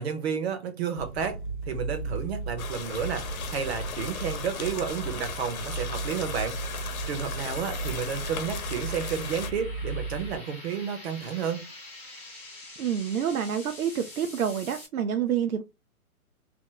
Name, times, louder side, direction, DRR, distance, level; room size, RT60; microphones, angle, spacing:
voice 1, 0.0-1.4 1.7-11.7, right 7 dB, 45° right, 0.9 m, -31 dB
sound 1, 1.0-10.4, right 3 dB, 40° left, 0.4 m, -36 dB
sound 2, 2.6-9.5, left 3 dB, 70° left, 0.9 m, -36 dB
sound 3, 3.7-14.9, left 2 dB, 5° left, 0.7 m, -47 dB
voice 2, 12.8-15.6, right 8 dB, 75° right, 0.6 m, -28 dB
2.9 x 2.1 x 3.8 m
hypercardioid pair, 155°, 43 cm